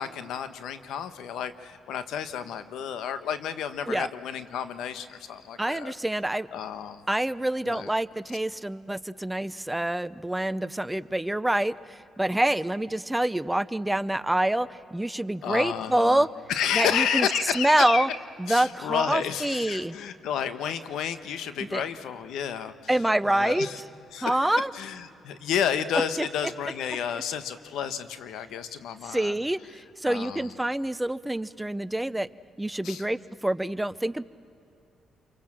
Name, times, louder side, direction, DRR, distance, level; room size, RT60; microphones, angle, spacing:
voice 1, 0.0-5.9 6.5-7.0 7.6-7.9 15.4-18.0 18.5-23.8 24.1-29.3 30.0-30.5 32.8-33.0, left 8 dB, 80° left, 11 dB, 1.2 m, -31 dB
voice 2, 5.6-6.5 7.1-16.3 16.7-17.3 17.6-18.1 18.4-20.0 21.7-21.8 22.9-23.7 24.2-24.7 25.9-26.5 29.0-32.3 32.6-34.2, right 1 dB, 10° right, 17 dB, 0.5 m, -26 dB
28.0 x 24.0 x 7.6 m, 2.6 s
cardioid pair, 90°, 0 cm